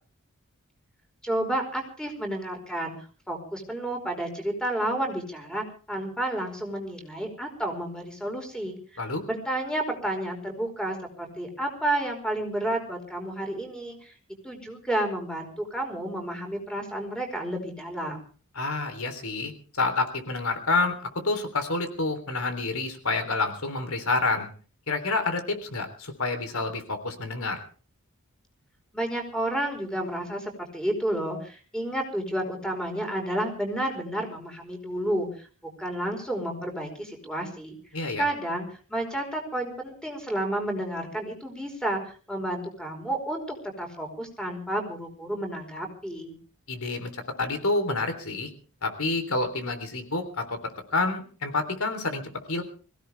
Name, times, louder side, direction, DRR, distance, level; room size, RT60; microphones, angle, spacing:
voice 1, 1.2-14.1 14.4-18.2 28.9-35.5 35.8-37.8 38.2-38.6 38.9-46.4, right 1 dB, 5° left, 3 dB, 4.8 m, -31 dB
voice 2, 18.6-24.5 24.9-27.6 37.9-38.2 46.7-48.5 48.8-50.6 50.9-52.6, left 3 dB, 85° left, 8 dB, 3.6 m, -28 dB
24.5 x 16.5 x 3.5 m, 0.40 s
head